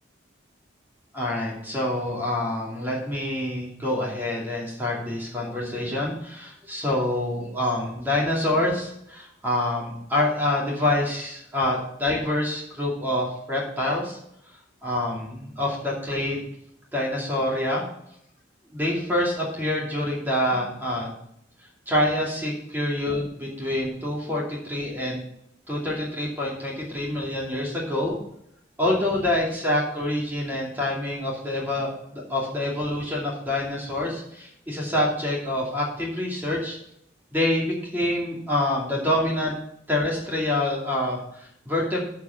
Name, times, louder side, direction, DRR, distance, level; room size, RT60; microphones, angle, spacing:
voice 1, 1.1-14.2 14.8-16.5 16.9-17.8 18.7-21.1 21.9-25.2 25.7-28.1 28.8-36.8 37.3-39.5 39.9-42.0, left 1 dB, 10° right, -4 dB, 2.6 m, -26 dB
13.5 x 4.9 x 5.8 m, 0.74 s
head